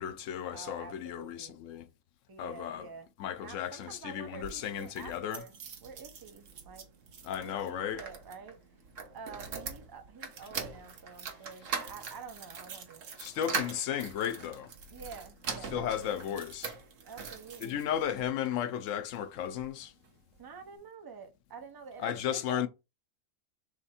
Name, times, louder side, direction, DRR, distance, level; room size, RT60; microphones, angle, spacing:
voice 1, 0.0-1.9 2.4-2.9 3.2-5.4 7.2-8.0 13.2-14.7 15.7-16.7 17.6-19.9 22.0-22.7, left 9 dB, 80° left, 1.0 m, -34 dB
voice 2, 0.5-1.6 2.3-3.1 3.4-6.9 7.3-8.6 9.1-13.2 14.9-16.4 17.0-17.8 20.4-22.7, right 5 dB, 30° right, 0.4 m, -48 dB
sound 1, 4.3-18.3 18.9-19.7 20.0-20.1 20.4-20.5, right 5 dB, 80° right, 1.2 m, -42 dB
3.3 x 3.3 x 4.2 m
omnidirectional pair, 1.3 m